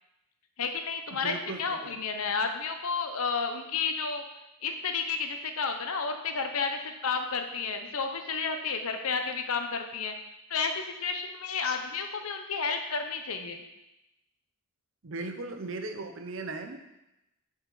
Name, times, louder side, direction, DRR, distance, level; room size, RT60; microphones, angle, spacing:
voice 1, 0.6-4.2 4.6-10.1 10.5-13.6, left 5 dB, 80° left, 6 dB, 0.8 m, -31 dB
voice 2, 1.2-1.9 15.0-17.0, right 3 dB, 60° right, 5 dB, 0.7 m, -38 dB
8.0 x 4.4 x 4.0 m, 0.92 s
head